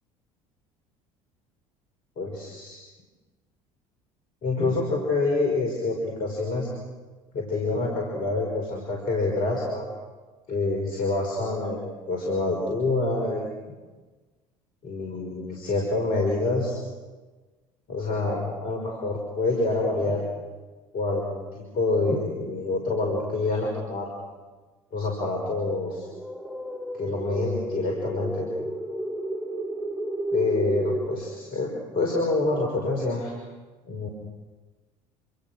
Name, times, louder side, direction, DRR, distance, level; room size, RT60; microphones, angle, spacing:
voice 1, 2.2-2.8 4.4-6.7 7.3-9.9 10.5-13.5 14.8-16.8 17.9-20.2 20.9-24.1 24.9-26.1 26.9-28.5 30.3-33.3 33.9-34.1, left 2 dB, 55° left, 0 dB, 5.7 m, -27 dB
sound 1, 26.1-31.1, right 1 dB, ahead, 4.7 m, -32 dB
27.5 x 26.5 x 6.4 m, 1.3 s
figure-of-eight pair, 60°, 17 cm